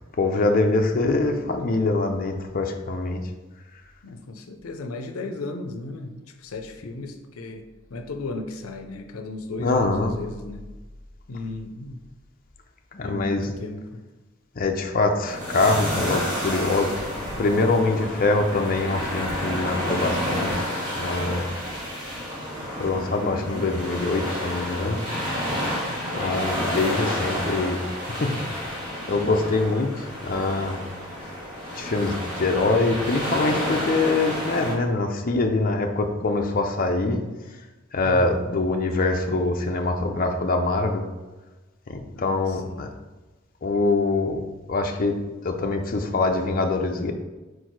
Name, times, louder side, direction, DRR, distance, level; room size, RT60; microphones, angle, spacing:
voice 1, 0.2-3.2 9.6-10.2 12.9-13.5 14.6-17.1 17.4-20.7 21.0-21.4 22.7-25.0 26.1-27.8 28.1-28.4 29.1-30.8 31.7-37.2 37.9-41.0 41.9-42.9 43.6-44.4 44.7-45.1 45.4-47.1, left 3 dB, 45° left, 3 dB, 0.6 m, -24 dB
voice 2, 4.0-7.6 7.9-10.7 11.3-12.0 13.0-14.0 22.9-23.7 25.8-26.4 38.0-38.7 42.1-42.9, left 2 dB, 90° left, 7 dB, 0.6 m, -36 dB
sound 1, 15.3-34.7, equal, 40° right, 1.9 m, -30 dB
4.7 x 4.5 x 4.6 m, 1.2 s
head